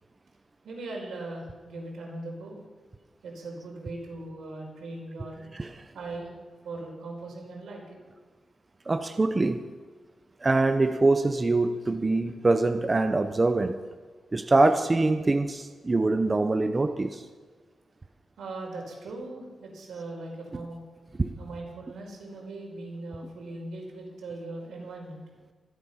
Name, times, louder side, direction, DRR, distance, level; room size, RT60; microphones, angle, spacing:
voice 1, 0.6-2.6 3.2-5.4 5.9-6.3 6.6-8.0 18.4-20.8 21.4-25.2, right 2 dB, 90° right, -1 dB, 4.9 m, -39 dB
voice 2, 8.9-9.6 10.4-13.8 14.3-17.2 21.2-21.3, right 2 dB, 25° right, 7 dB, 0.8 m, -24 dB
24.5 x 8.4 x 5.8 m, 1.4 s
wide cardioid pair, 110°, 0 cm